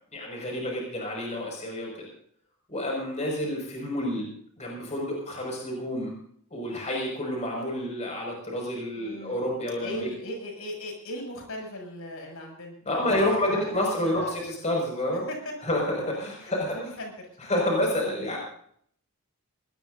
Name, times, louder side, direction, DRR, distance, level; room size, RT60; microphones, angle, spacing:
voice 1, 0.1-2.1 2.7-4.3 4.6-6.1 6.5-10.1 12.9-15.2 15.6-16.8 17.5-18.4, left 1 dB, 35° left, -1 dB, 6.2 m, -29 dB
voice 2, 9.0-9.4 9.8-14.4 15.1-15.6 16.4-17.1, equal, 75° left, 1 dB, 7.5 m, -38 dB
22.0 x 20.0 x 2.8 m, 0.63 s
head